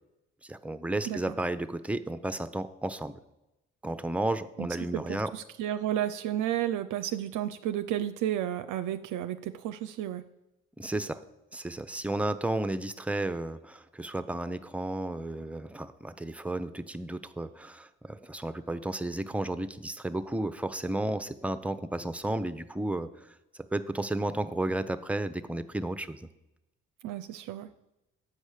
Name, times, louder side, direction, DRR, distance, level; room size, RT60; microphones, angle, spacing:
voice 1, 0.4-3.1 3.8-5.3 10.8-11.2 11.5-23.3 23.6-26.2, right 1 dB, 5° right, 11 dB, 0.6 m, -33 dB
voice 2, 4.9-10.2 27.0-27.7, right 11 dB, 65° right, 10 dB, 0.5 m, -32 dB
8.3 x 5.3 x 6.4 m, 0.92 s
hypercardioid pair, 45°, 34 cm